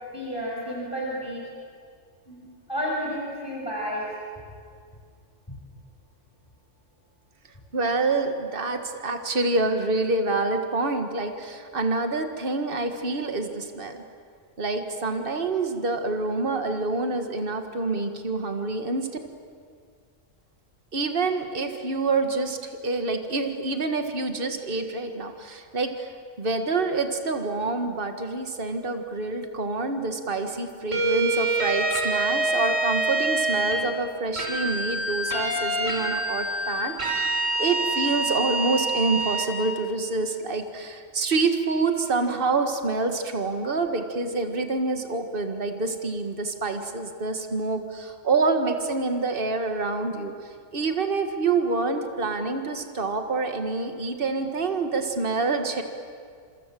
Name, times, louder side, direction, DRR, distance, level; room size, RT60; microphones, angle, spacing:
voice 1, 0.1-1.4 2.3-2.4 2.7-4.1 5.5-5.6, equal, 15° left, -3 dB, 6.3 m, -31 dB
voice 2, 7.7-14.0 14.6-19.1 20.9-26.1 26.4-50.3 50.7-55.8, right 3 dB, 45° right, 6 dB, 2.0 m, -27 dB
sound 1, 30.9-33.8 34.4-39.5, right 2 dB, 65° right, 5.7 m, -26 dB
27.0 x 26.0 x 7.7 m, 2.1 s
omnidirectional pair, 1.4 m